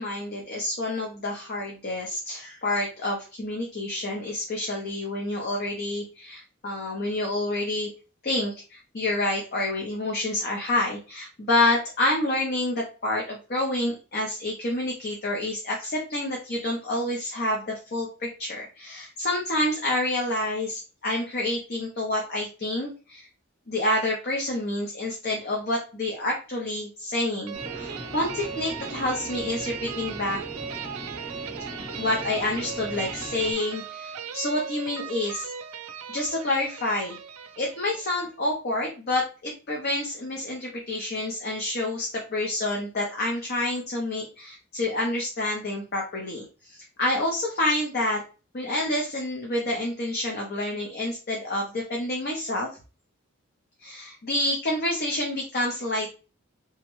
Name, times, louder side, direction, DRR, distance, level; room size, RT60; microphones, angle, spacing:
voice 1, 0.0-7.9 8.2-23.3 23.7-30.4 32.0-35.5 36.1-37.2 37.6-48.2 48.5-52.7 53.8-56.1, left 1 dB, 45° left, -1 dB, 0.6 m, -28 dB
sound 1, 27.5-33.5, equal, 10° right, 0.8 m, -39 dB
sound 2, 27.5-38.2, right 8 dB, 85° right, 0.4 m, -37 dB
3.4 x 2.1 x 3.0 m, 0.34 s
head